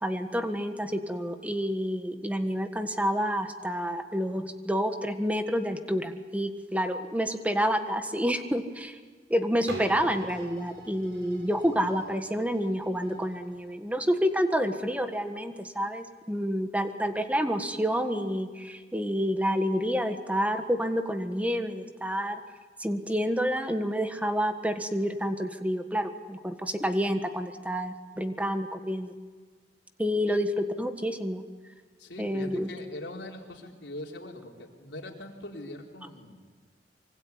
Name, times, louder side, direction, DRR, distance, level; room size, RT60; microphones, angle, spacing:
voice 1, 0.0-9.0 9.3-22.4 22.8-29.2 30.0-31.4 32.2-32.7, equal, 10° right, 7 dB, 1.6 m, -29 dB
sound 1, 9.7-15.4 16.0-16.1, right 1 dB, 70° right, 6.3 m, -46 dB
voice 2, 32.0-36.4, left 1 dB, 70° left, 0 dB, 4.3 m, -42 dB
25.0 x 24.0 x 9.7 m, 1.5 s
head